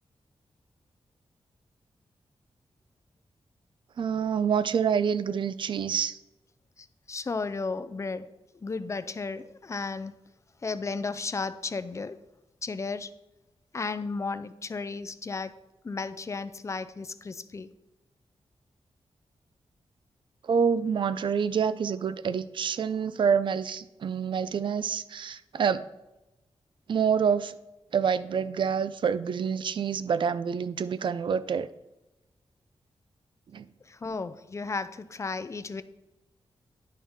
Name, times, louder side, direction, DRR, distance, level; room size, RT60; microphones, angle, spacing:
voice 1, 4.0-6.2 20.5-25.8 26.9-27.5 27.9-31.7 33.5-33.6, right 7 dB, 50° right, 14 dB, 0.3 m, -27 dB
voice 2, 7.1-8.3 8.6-10.1 10.6-12.2 12.6-13.1 13.7-15.5 15.8-17.7 33.9-35.8, left 4 dB, 30° left, 13 dB, 0.4 m, -34 dB
10.5 x 5.5 x 3.5 m, 0.98 s
wide cardioid pair, 150°, 11 cm